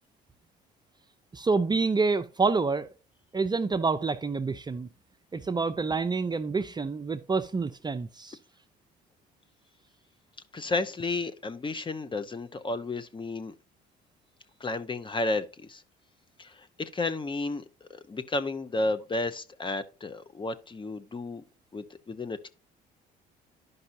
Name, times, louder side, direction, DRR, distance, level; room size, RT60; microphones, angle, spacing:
voice 1, 1.3-2.9 3.3-4.9 5.3-8.4, right 4 dB, 20° right, 0.6 m, -27 dB
voice 2, 10.5-13.5 14.6-15.8 16.4-21.4 21.7-22.5, left 2 dB, 25° left, 0.8 m, -32 dB
11.5 x 5.4 x 2.6 m
supercardioid pair, 75°, 19 cm